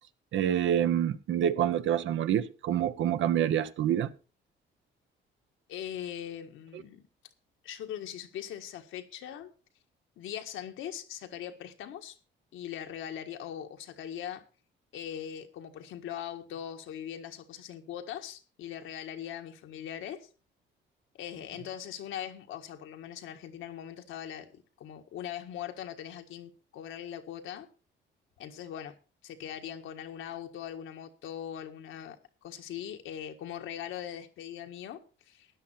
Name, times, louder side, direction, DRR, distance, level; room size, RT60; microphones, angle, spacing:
voice 1, 0.3-4.1, right 10 dB, 75° right, 1.0 m, -27 dB
voice 2, 5.7-7.1 7.6-9.5 10.2-12.2 12.5-14.4 14.9-20.3 21.1-27.7 28.4-28.9 29.2-35.5, left 10 dB, 85° left, 1.6 m, -41 dB
13.0 x 10.0 x 4.4 m
cardioid pair, 90°, 20 cm